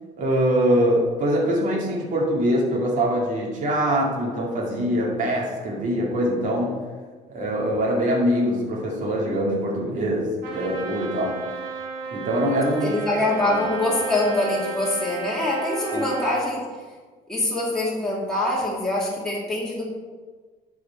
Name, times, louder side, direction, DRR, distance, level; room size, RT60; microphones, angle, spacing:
voice 1, 0.2-6.8 7.3-11.4 12.1-12.9 15.9-16.1, equal, 50° right, -3 dB, 2.5 m, -23 dB
Trumpet, 10.4-16.5, right 3 dB, 90° right, 2.7 m, -33 dB
voice 2, 12.8-16.7 17.3-19.9, left 1 dB, 5° left, -6 dB, 2.2 m, -24 dB
11.0 x 4.9 x 4.6 m, 1.4 s
cardioid pair, 110°, 17 cm